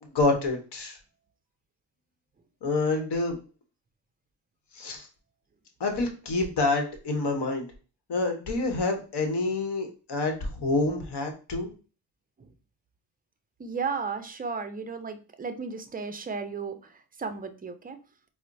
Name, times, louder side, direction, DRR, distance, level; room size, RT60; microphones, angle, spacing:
voice 1, 0.0-1.0 2.6-3.4 4.7-5.1 5.8-7.7 8.1-11.7, left 3 dB, 55° left, 4 dB, 1.0 m, -27 dB
voice 2, 13.6-16.9 17.2-18.0, right 5 dB, 20° right, 9 dB, 0.4 m, -34 dB
4.2 x 2.1 x 2.6 m, 0.35 s
cardioid pair, 70°, 47 cm